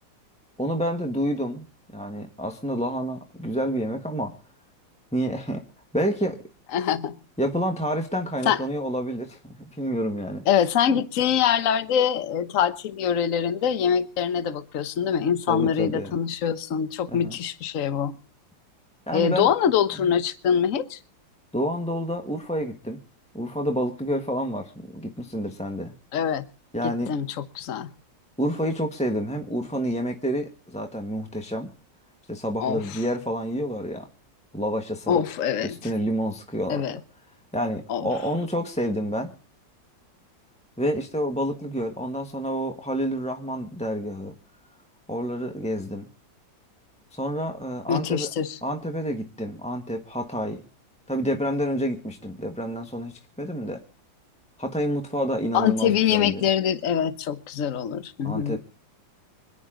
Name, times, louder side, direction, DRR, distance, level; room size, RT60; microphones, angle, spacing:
voice 1, 0.6-1.7 1.9-4.3 5.1-5.6 5.9-6.4 7.4-10.4 15.5-16.1 17.1-17.4 19.1-19.5 19.9-20.1 21.5-23.0 23.3-25.9 26.7-27.2 28.4-31.7 32.3-34.1 34.5-35.2 35.6-36.8 37.5-39.3 40.8-44.3 45.1-46.1 47.1-48.3 48.6-50.6 51.1-53.8 54.6-56.4 58.2-58.6, equal, 5° left, 1.2 m, -28 dB
voice 2, 6.7-7.2 8.5-8.6 10.5-18.2 19.1-21.0 26.1-26.4 26.8-27.9 32.6-33.0 35.1-35.8 36.7-37.0 37.9-38.1 47.9-48.6 55.5-58.6, left 8 dB, 50° left, 1.3 m, -24 dB
26.0 x 10.0 x 3.8 m
omnidirectional pair, 2.0 m